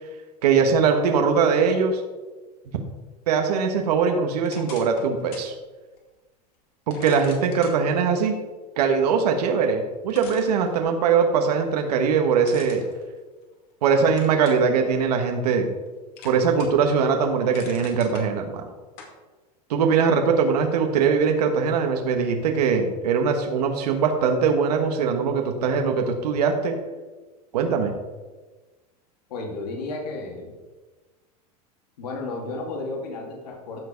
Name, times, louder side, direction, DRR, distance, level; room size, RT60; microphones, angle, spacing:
voice 1, 0.4-2.0 3.3-5.5 6.9-8.4 8.8-12.8 13.8-15.7 16.2-18.6 19.7-26.8 27.5-27.9, right 6 dB, 85° right, 4 dB, 1.4 m, -21 dB
sound 1, 4.5-5.5 6.0-6.1 6.9-7.8 9.6-9.7 10.1-11.2 12.4-13.7 14.2-14.7 15.2-15.9 16.2-16.9 17.2-18.3 19.0-19.2, left 5 dB, 50° left, 2.3 m, -43 dB
voice 2, 29.3-30.5 32.0-33.9, left 3 dB, 85° left, 0 dB, 2.6 m, -33 dB
14.0 x 4.8 x 5.2 m, 1.2 s
supercardioid pair, 140°, 20 cm